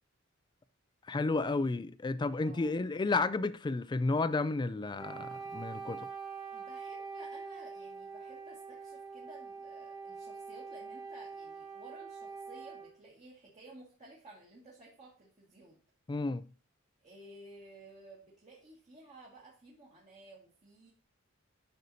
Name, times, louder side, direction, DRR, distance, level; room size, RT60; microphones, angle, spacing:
voice 1, 1.1-6.1 16.1-16.5, left 3 dB, 20° left, 0.3 m, -32 dB
voice 2, 2.4-2.8 6.5-15.8 17.0-20.9, right 2 dB, 35° right, 2.0 m, -55 dB
Wind instrument woodwind instrument, 5.0-13.0, right 5 dB, 20° right, 1.9 m, -44 dB
10.5 x 6.6 x 2.7 m
head